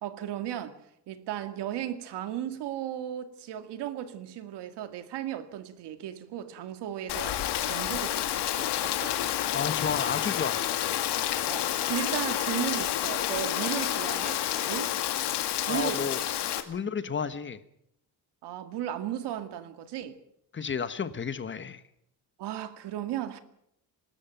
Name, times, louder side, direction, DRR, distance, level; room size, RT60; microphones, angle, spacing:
voice 1, 0.0-0.8 1.1-9.2 11.4-14.9 15.7-16.1 18.4-20.2 22.4-23.4, right 11 dB, 85° right, 2.2 m, -35 dB
Rain, 7.1-16.6, left 12 dB, 80° left, 2.3 m, -29 dB
voice 2, 9.5-10.7 15.7-16.2 16.7-17.6 20.5-21.8, left 6 dB, 30° left, 1.2 m, -32 dB
25.0 x 13.0 x 9.2 m
cardioid pair, 150°, 40 cm